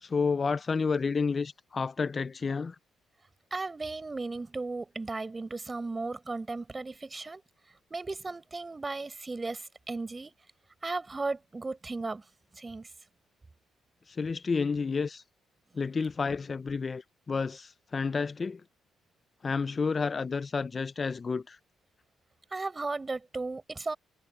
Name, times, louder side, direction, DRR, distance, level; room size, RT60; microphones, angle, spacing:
voice 1, 0.0-2.8 14.1-15.2 15.7-18.6 19.4-21.6, left 5 dB, 35° left, 0.5 m, -30 dB
voice 2, 3.5-7.4 7.9-10.3 10.8-12.2 12.5-12.9 22.5-24.0, right 3 dB, 25° right, 4.3 m, -35 dB
cardioid pair, 90°, 0 cm